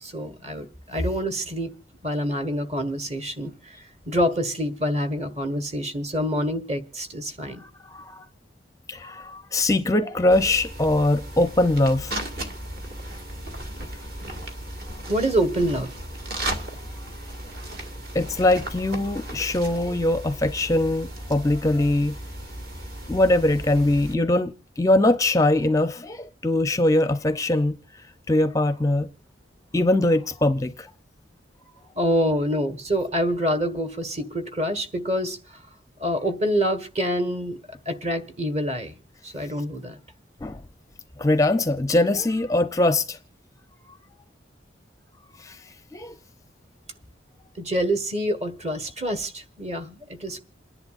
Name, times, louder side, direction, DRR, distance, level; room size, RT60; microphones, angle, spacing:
voice 1, 0.0-1.7 2.0-3.8 4.1-7.6 15.1-15.9 32.0-35.4 36.0-37.6 37.8-38.9 39.2-40.0 47.6-50.4, equal, 35° right, 1.4 m, -26 dB
voice 2, 7.6-8.3 8.9-12.1 18.1-22.1 23.1-27.8 28.3-29.1 29.7-30.9 40.4-40.6 41.2-43.2 45.4-45.6 45.9-46.1, left 1 dB, 15° left, 0.5 m, -22 dB
sound 1, 10.3-24.1, right 1 dB, 50° right, 1.9 m, -36 dB
28.0 x 10.5 x 2.4 m
head